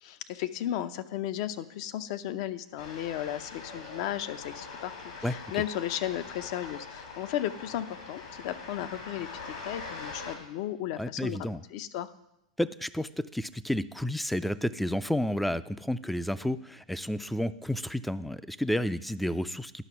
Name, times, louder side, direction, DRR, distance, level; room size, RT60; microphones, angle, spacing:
voice 1, 0.0-12.1, left 12 dB, 55° left, 12 dB, 0.6 m, -35 dB
sound 1, 2.8-10.4, left 4 dB, 70° left, 3.3 m, -43 dB
voice 2, 11.0-11.6 12.6-19.9, left 1 dB, ahead, 15 dB, 0.4 m, -31 dB
11.0 x 6.0 x 5.8 m, 0.84 s
hypercardioid pair, 110°, 4 cm